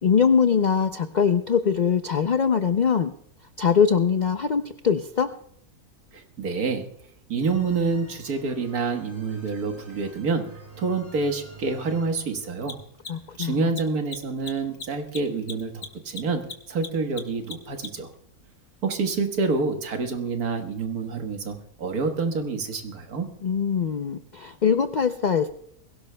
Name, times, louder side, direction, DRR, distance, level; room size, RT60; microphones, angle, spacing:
voice 1, 0.0-3.1 3.6-5.3 13.1-13.7 23.4-25.5, left 6 dB, 85° left, 9 dB, 0.4 m, -22 dB
voice 2, 6.1-6.9 7.3-10.5 10.8-12.8 13.4-18.1 18.8-23.3, right 4 dB, 85° right, 5 dB, 1.9 m, -27 dB
sound 1, 7.4-12.6, right 3 dB, 35° right, 2.8 m, -48 dB
Mechanisms, 9.5-9.6 12.5-18.1, left 5 dB, 55° left, 1.7 m, -38 dB
22.0 x 17.0 x 2.2 m, 0.69 s
omnidirectional pair, 1.5 m